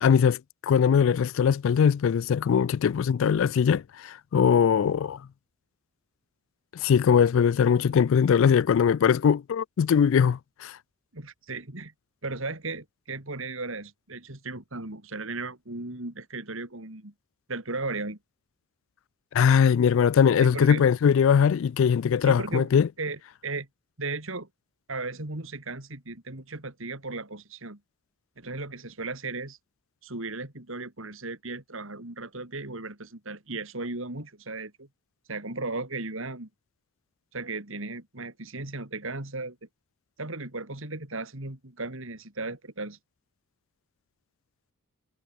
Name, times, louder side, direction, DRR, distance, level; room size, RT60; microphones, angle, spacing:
voice 1, 0.0-5.2 6.7-10.8 19.3-22.9, left 7 dB, 60° left, 0.3 m, -21 dB
voice 2, 11.1-11.9 12.2-17.1 17.5-18.2 20.4-20.8 22.2-22.7 23.0-23.7 24.0-24.5 24.9-27.8 28.4-29.6 30.0-34.9 35.3-36.5 37.3-39.6 40.2-43.0, right 3 dB, 65° right, 3.0 m, -36 dB
head